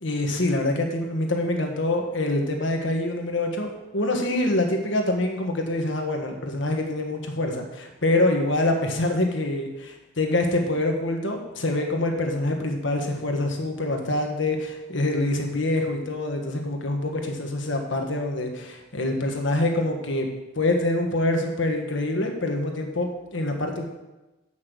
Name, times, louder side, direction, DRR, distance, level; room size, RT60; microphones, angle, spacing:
voice 1, 0.0-20.3 20.5-23.8, left 2 dB, 60° left, 3 dB, 1.5 m, -25 dB
8.6 x 6.0 x 6.2 m, 1.0 s
head